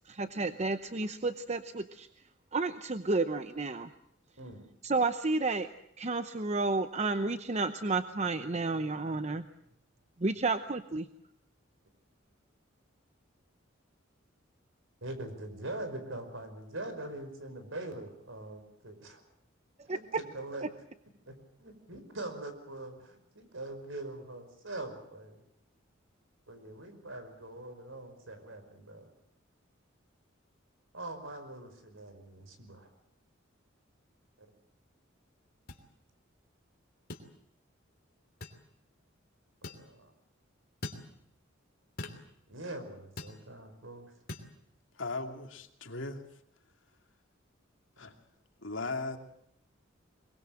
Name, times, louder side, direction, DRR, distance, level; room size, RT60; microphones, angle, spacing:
voice 1, 0.1-2.1 2.5-3.9 4.8-5.7 6.0-9.4 10.2-11.1 19.9-20.0, right 3 dB, 35° right, 10 dB, 0.8 m, -31 dB
voice 2, 15.0-19.2 19.9-20.7 21.3-25.4 26.5-29.1 30.9-32.9 39.7-40.1 42.5-44.1 48.0-48.2, right 2 dB, 80° right, 8 dB, 5.2 m, -43 dB
sound 1, 35.7-35.8 37.1-37.3 38.4-38.6 39.6-39.9 40.8-41.1 42.0-42.2 43.2-43.4 44.3-44.5, left 2 dB, 50° left, 3.1 m, -41 dB
voice 3, 45.0-46.2 48.0-48.1 48.6-49.2, left 3 dB, 70° left, 5 dB, 2.7 m, -37 dB
23.0 x 22.5 x 7.6 m, 0.75 s
head